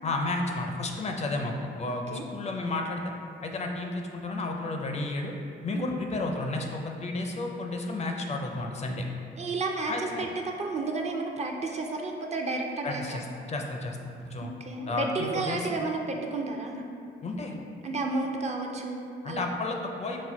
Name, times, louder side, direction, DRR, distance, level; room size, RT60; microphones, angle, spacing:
voice 1, 0.0-3.0 3.4-5.3 5.6-9.0 9.9-10.3 12.8-14.5 14.9-15.8 17.2-17.5 19.2-20.2, left 2 dB, 35° left, 2 dB, 0.4 m, -32 dB
voice 2, 9.4-9.9 10.2-13.2 14.4-16.8 17.8-19.4, right 3 dB, 35° right, 2 dB, 0.4 m, -32 dB
4.2 x 2.1 x 4.5 m, 2.4 s
cardioid pair, 90°, 20 cm